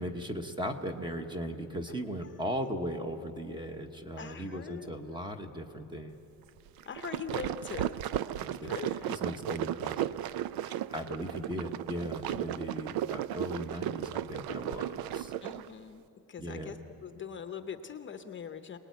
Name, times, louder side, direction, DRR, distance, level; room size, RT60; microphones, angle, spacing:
voice 1, 0.0-6.2 8.4-8.7 9.1-10.0 10.6-15.3 16.4-16.8, equal, 10° right, 5 dB, 1.1 m, -38 dB
voice 2, 4.2-4.9 6.9-8.0 8.6-9.1 12.3-12.4 15.4-16.0 16.3-18.8, left 7 dB, 30° left, 8 dB, 0.8 m, -42 dB
sound 1, 6.8-15.7, right 12 dB, 65° right, 0.6 m, -35 dB
26.5 x 19.5 x 9.4 m, 3.0 s
cardioid pair, 165°, 39 cm